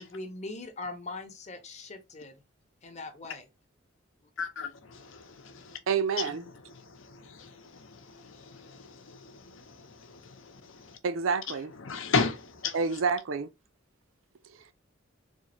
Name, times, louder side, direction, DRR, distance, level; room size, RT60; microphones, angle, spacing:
voice 1, 0.0-2.4 2.8-3.5, left 2 dB, 35° left, 0.8 m, -41 dB
voice 2, 4.4-5.8 6.7-11.0 11.8-12.8, left 4 dB, 80° left, 0.8 m, -35 dB
voice 3, 5.9-6.5 11.0-11.7 12.7-13.5, right 5 dB, 85° right, 0.5 m, -28 dB
3.6 x 2.5 x 4.2 m
head